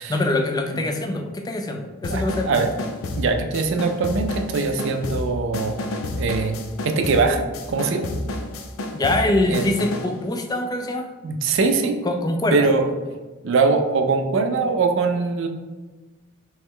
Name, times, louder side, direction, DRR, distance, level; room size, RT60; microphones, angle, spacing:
voice 1, 0.1-2.7 8.9-11.1 12.0-12.7, left 2 dB, 20° left, 4 dB, 0.3 m, -24 dB
sound 1, 2.0-10.2, left 1 dB, 75° left, 0.5 m, -30 dB
voice 2, 2.1-2.7 3.2-5.7 6.2-6.6 6.8-7.4 7.7-8.0 9.5-9.8 11.2-12.0 12.5-12.9 13.4-15.5, right 4 dB, 60° right, 5 dB, 0.4 m, -22 dB
3.2 x 3.0 x 3.6 m, 1.3 s
head